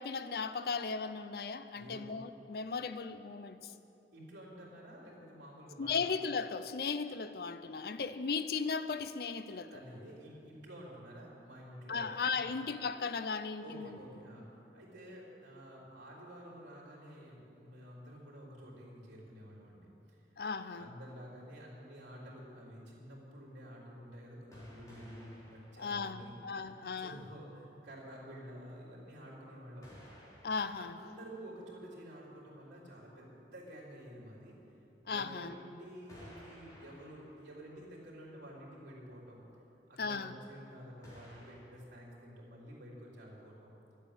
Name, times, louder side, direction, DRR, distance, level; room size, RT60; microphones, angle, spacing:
voice 1, 0.0-3.7 5.8-9.7 11.9-13.9 20.4-20.9 25.8-27.2 30.4-31.0 35.1-35.5 40.0-40.3, left 5 dB, 55° left, 12 dB, 0.5 m, -36 dB
voice 2, 1.7-2.1 4.1-6.0 9.7-12.5 13.6-19.9 20.7-29.9 30.7-34.6 35.0-39.4 39.9-43.7, equal, 90° right, -5 dB, 3.6 m, -50 dB
sound 1, 24.5-26.7 27.1-27.2 29.8-31.7 34.6-34.7 36.1-38.0 38.4-38.5 41.0-41.6, equal, 20° left, 3.6 m, -56 dB
12.5 x 8.5 x 8.8 m, 2.9 s
head